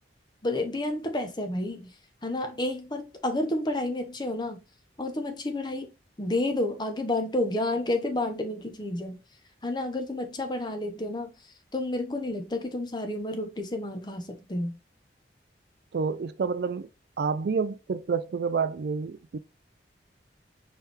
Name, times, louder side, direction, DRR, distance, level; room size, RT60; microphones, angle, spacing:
voice 1, 0.4-1.9 2.2-4.6 5.0-5.9 6.2-9.1 9.6-11.3 11.7-14.7, left 1 dB, 25° left, 0.8 m, -30 dB
voice 2, 15.9-16.9 17.2-19.4, right 5 dB, 65° right, 0.4 m, -29 dB
4.6 x 3.3 x 3.3 m
head